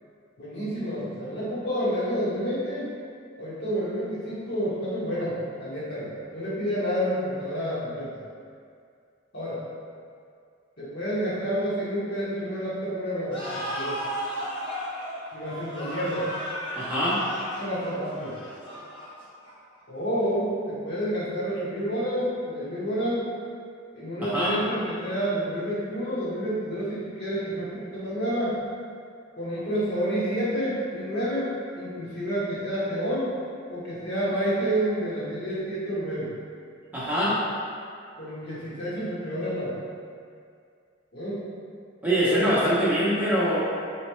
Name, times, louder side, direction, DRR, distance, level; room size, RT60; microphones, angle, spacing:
voice 1, 0.4-2.9 3.4-8.2 9.3-9.6 10.8-14.0 15.3-16.2 17.6-18.4 19.9-23.2 23.9-28.6 29.4-33.3 33.7-36.3 38.2-39.8 41.1-41.4 42.3-42.4, equal, 55° left, -10 dB, 1.3 m, -29 dB
sound 1, 13.3-19.8, equal, 25° left, 0.8 m, -35 dB
voice 2, 16.8-17.2 24.2-24.6 36.9-37.4 42.0-43.6, equal, 10° right, -10 dB, 0.8 m, -23 dB
4.2 x 3.1 x 3.1 m, 2.3 s
head